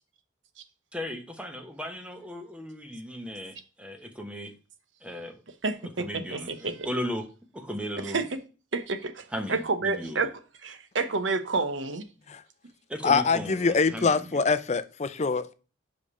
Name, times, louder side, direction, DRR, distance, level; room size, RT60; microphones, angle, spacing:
voice 1, 0.9-4.5 5.0-5.4 6.0-7.3 7.5-8.3 9.3-10.3 12.9-14.4, equal, 5° right, 1.0 m, -36 dB
voice 2, 5.6-6.0 6.3-6.7 8.1-8.2 8.7-10.3 10.6-12.0, right 3 dB, 80° right, 1.0 m, -29 dB
voice 3, 13.0-15.5, left 4 dB, 35° left, 0.5 m, -24 dB
5.3 x 5.0 x 5.3 m
head